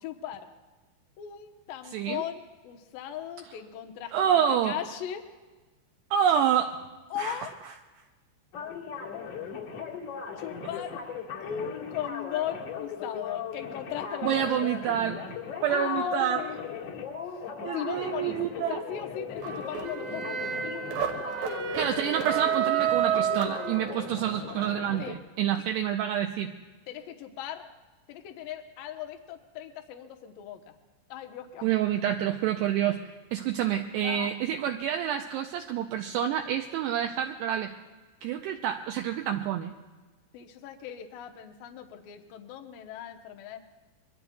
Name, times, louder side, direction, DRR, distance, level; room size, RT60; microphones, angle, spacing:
voice 1, 0.0-0.5 1.2-5.2 7.1-7.6 10.4-11.0 11.4-14.7 15.7-16.6 17.3-17.4 17.7-21.8 25.0-25.2 26.9-27.7 28.1-30.8 31.1-31.7 34.0-34.3 40.3-43.6, left 10 dB, 75° left, 4 dB, 2.1 m, -38 dB
voice 2, 1.9-2.2 4.1-4.8 6.1-6.8 7.2-7.4 14.2-15.3 15.6-16.4 17.6-18.8 21.7-26.5 31.6-37.7 38.2-39.7, right 9 dB, 80° right, 4 dB, 2.5 m, -28 dB
sound 1, 8.5-25.1, left 6 dB, 55° left, 2.0 m, -38 dB
sound 2, 19.4-24.2, right 9 dB, 65° right, 2.6 m, -29 dB
26.5 x 22.5 x 2.3 m, 1.3 s
omnidirectional pair, 5.4 m